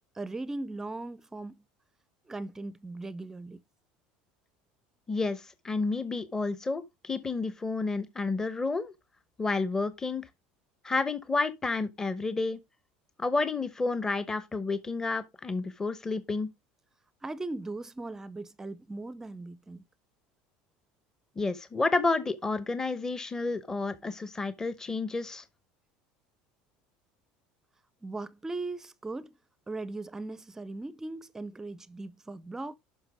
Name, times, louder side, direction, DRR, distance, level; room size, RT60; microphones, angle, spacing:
voice 1, 0.1-1.6 2.3-3.6 17.2-19.8 28.0-29.3 29.7-32.7, right 2 dB, 15° right, 0.6 m, -38 dB
voice 2, 5.1-8.9 9.4-10.2 10.8-12.6 13.2-16.5 21.4-25.4, left 3 dB, 15° left, 0.9 m, -30 dB
11.0 x 5.8 x 3.4 m
supercardioid pair, 110°, 3 cm